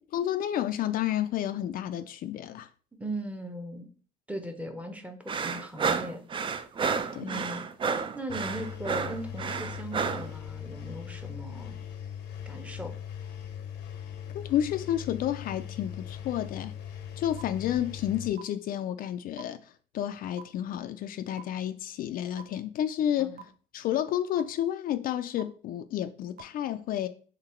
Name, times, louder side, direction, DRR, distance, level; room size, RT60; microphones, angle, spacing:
voice 1, 0.1-2.7 7.1-7.4 14.3-16.7 17.2-23.4 23.7-27.1, left 11 dB, 60° left, 0.4 m, -31 dB
voice 2, 2.9-3.9 4.3-6.2 7.2-7.7 8.1-11.8 12.5-12.9 23.2-23.4, right 1 dB, 10° right, 0.7 m, -38 dB
sound 1, 5.3-10.3, right 5 dB, 30° right, 0.4 m, -31 dB
Engine, 8.3-18.3, left 9 dB, 90° left, 0.8 m, -40 dB
sound 2, 17.4-17.5 18.4-18.5 19.4-19.5 20.4-20.5 21.4-21.5 22.4-22.5 23.4-23.5 24.4-24.5 25.4-25.5 26.4-26.5, right 10 dB, 60° right, 0.7 m, -43 dB
3.9 x 2.9 x 4.3 m
cardioid pair, 110°, 17 cm